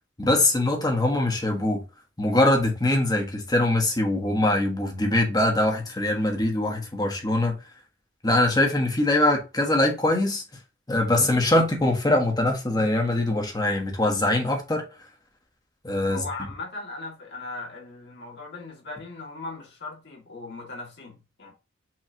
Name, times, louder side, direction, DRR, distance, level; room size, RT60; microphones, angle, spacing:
voice 1, 0.2-1.8 2.2-7.6 8.2-10.4 10.9-14.8 15.8-16.2, left 1 dB, 20° left, 1.2 m, -22 dB
voice 2, 16.1-21.5, left 3 dB, 60° left, 2.0 m, -38 dB
5.9 x 3.2 x 2.8 m
head